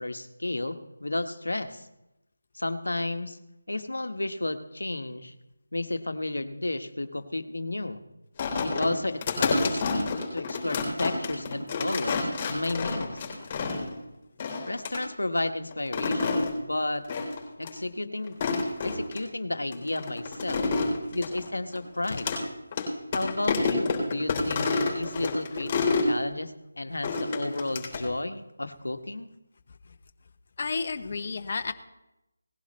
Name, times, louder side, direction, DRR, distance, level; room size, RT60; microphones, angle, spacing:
voice 1, 0.0-1.9 2.5-3.4 3.7-5.3 5.7-8.0 8.6-13.2 14.7-17.0 17.6-18.4 18.8-20.7 21.1-22.3 23.1-24.7 24.9-29.3, left 2 dB, 75° left, 9 dB, 1.2 m, -32 dB
sound 1, 8.4-14.0 14.4-15.0 15.7-16.5 17.1-17.4 17.6-17.7 18.3-19.2 19.7-22.4 22.7-22.9 23.1-26.1 27.0-28.1, left 4 dB, 25° left, 3.6 m, -29 dB
voice 2, 30.6-31.7, left 4 dB, 45° left, 7 dB, 0.9 m, -31 dB
18.5 x 15.5 x 3.2 m, 0.93 s
figure-of-eight pair, 160°, 0 cm